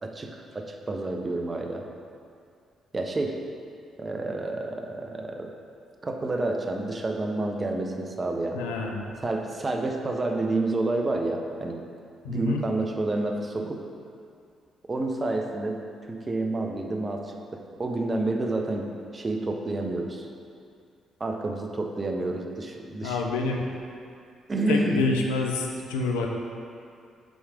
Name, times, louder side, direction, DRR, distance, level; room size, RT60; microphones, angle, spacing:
voice 1, 0.0-1.8 2.9-3.4 4.0-5.5 6.0-8.6 9.2-11.8 12.3-13.8 14.9-20.3 21.2-23.2 24.5-25.0, right 2 dB, 35° right, 3 dB, 0.7 m, -29 dB
voice 2, 8.5-9.1 12.2-12.6 23.0-23.7 24.7-26.3, left 3 dB, 80° left, 0 dB, 0.4 m, -27 dB
6.2 x 3.2 x 4.9 m, 2.3 s
hypercardioid pair, 40°, 0 cm